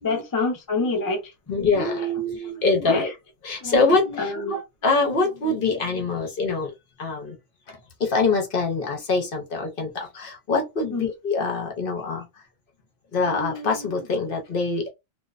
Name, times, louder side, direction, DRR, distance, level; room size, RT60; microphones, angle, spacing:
voice 1, 0.0-1.3 2.9-3.1 3.6-3.8 4.2-4.6 10.9-11.1, left 3 dB, 30° left, 0.4 m, -26 dB
voice 2, 1.5-3.1 3.4-6.7 7.0-7.4 7.7-12.4 13.1-14.9, left 3 dB, 55° left, 0.8 m, -24 dB
2.6 x 2.0 x 2.4 m
omnidirectional pair, 1.2 m